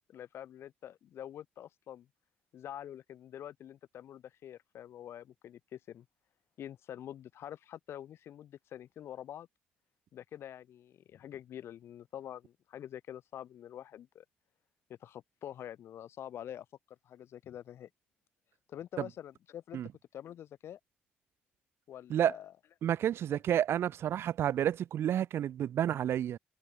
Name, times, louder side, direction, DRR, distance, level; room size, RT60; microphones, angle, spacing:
voice 1, 0.1-2.1 2.5-6.1 6.6-9.5 10.1-14.2 14.9-16.7 17.0-17.9 18.7-19.8 20.1-20.8 21.9-22.5, left 10 dB, 70° left, 1.9 m, -46 dB
voice 2, 22.8-26.4, right 10 dB, 70° right, 0.5 m, -30 dB
supercardioid pair, 55°, 4 cm